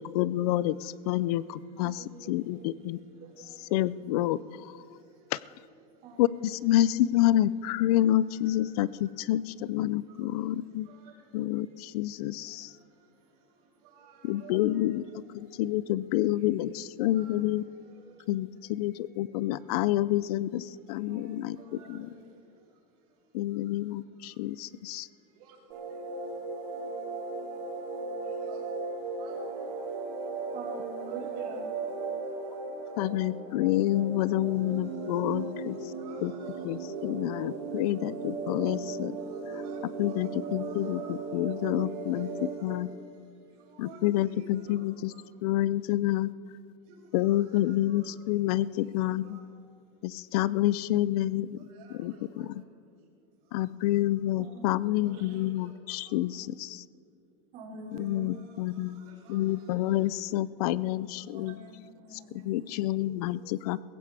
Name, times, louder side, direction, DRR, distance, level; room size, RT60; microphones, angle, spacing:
voice 1, 0.0-3.0 3.7-4.7 5.3-5.4 6.2-10.9 11.3-12.7 14.2-15.0 15.3-17.6 18.3-22.1 23.3-25.1 33.0-35.8 36.2-36.3 36.6-39.1 40.0-42.3 42.6-42.9 43.8-45.1 45.4-46.3 47.1-49.4 50.0-51.6 52.0-52.5 53.5-56.8 57.9-59.0 59.3-61.5 62.3-63.8, left 14 dB, 65° left, 19 dB, 0.5 m, -28 dB
voice 2, 1.8-2.7 3.2-3.7 6.0-6.9 21.0-22.1 30.5-31.7 37.8-38.3 54.3-55.4 57.5-58.3 61.3-62.6, right 3 dB, 40° right, -2 dB, 3.1 m, -46 dB
voice 3, 14.0-14.7 17.1-17.4 17.8-18.1 21.7-21.9 25.4-25.5 28.4-28.6 29.2-29.6 31.1-31.2 36.0-36.6 39.6-40.3 40.6-41.4 42.1-42.3 43.8-44.8 45.1-45.2 46.9-47.0 47.3-48.0 49.2-49.4 51.8-52.2 55.4-55.7 59.0-60.1 63.1-63.4, right 5 dB, 65° right, -8 dB, 4.7 m, -53 dB
sound 1, 25.7-42.8, right 4 dB, 90° right, 4.5 m, -37 dB
20.5 x 16.5 x 3.4 m, 2.3 s
supercardioid pair, 160°, 21 cm